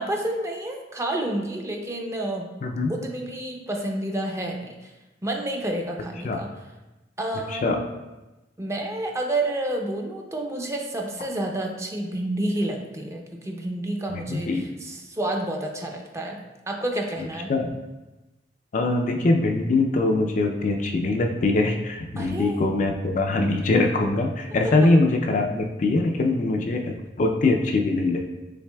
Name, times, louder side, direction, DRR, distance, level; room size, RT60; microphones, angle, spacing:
voice 1, 0.0-2.5 2.9-4.9 5.2-6.5 7.2-7.8 8.6-16.4 16.7-17.5 22.2-22.7 24.6-24.7, right 1 dB, 15° right, 1 dB, 0.5 m, -29 dB
voice 2, 2.6-2.9 6.2-6.4 7.5-7.8 14.1-14.6 17.5-17.7 18.7-28.3, left 2 dB, 45° left, 3 dB, 0.4 m, -22 dB
5.8 x 3.9 x 2.2 m, 1.1 s
head